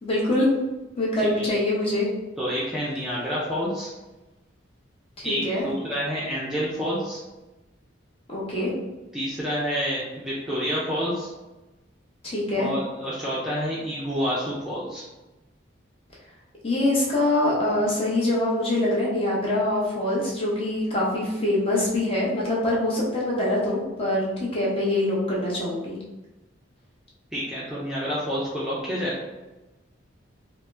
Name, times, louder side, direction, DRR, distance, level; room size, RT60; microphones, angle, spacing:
voice 1, 0.0-0.5 1.0-2.1 5.2-5.7 8.3-8.7 12.2-12.7 16.6-26.0, left 1 dB, 30° left, -5 dB, 0.8 m, -24 dB
voice 2, 2.4-3.9 5.2-7.2 9.1-11.3 12.6-15.0 27.3-29.1, equal, 5° right, -8 dB, 0.4 m, -28 dB
2.7 x 2.1 x 3.3 m, 1.1 s
head